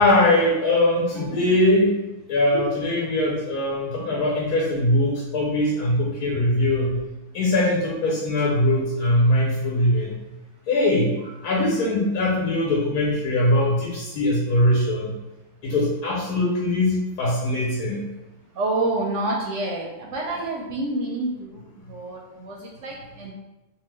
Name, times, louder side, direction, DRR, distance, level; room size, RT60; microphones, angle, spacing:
voice 1, 0.0-2.0 2.3-7.0 7.3-10.2 10.7-11.2 11.4-15.2 15.6-18.0, left 1 dB, 85° left, -4 dB, 1.2 m, -21 dB
voice 2, 1.1-1.6 2.5-2.7 11.2-11.3 18.6-21.6 21.9-23.3, right 2 dB, 70° right, -2 dB, 0.7 m, -28 dB
2.9 x 2.2 x 3.2 m, 0.99 s
omnidirectional pair, 1.6 m